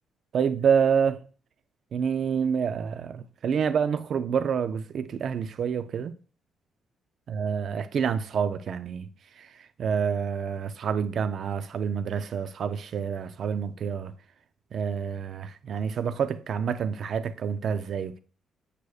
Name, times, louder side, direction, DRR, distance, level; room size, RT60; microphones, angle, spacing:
voice 1, 0.3-1.2 1.9-6.2 7.3-9.1 9.3-14.1 14.7-18.2, right 7 dB, 60° right, 0.3 m, -28 dB
8.2 x 6.3 x 2.4 m
cardioid pair, 90°, 0 cm